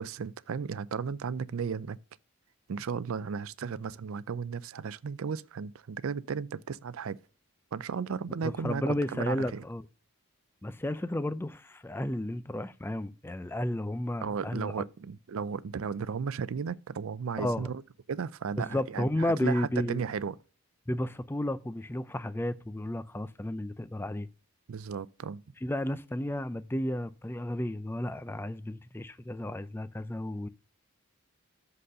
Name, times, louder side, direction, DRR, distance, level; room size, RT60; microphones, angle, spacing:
voice 1, 0.0-2.0 2.7-7.2 7.7-8.8 9.1-9.6 14.2-17.7 18.1-20.4 24.7-25.4, right 6 dB, 70° right, 0.4 m, -35 dB
voice 2, 8.4-9.8 10.6-14.7 17.4-17.7 18.6-20.0 20.9-24.3 25.6-30.5, left 1 dB, 10° left, 0.3 m, -32 dB
7.7 x 4.1 x 6.4 m
head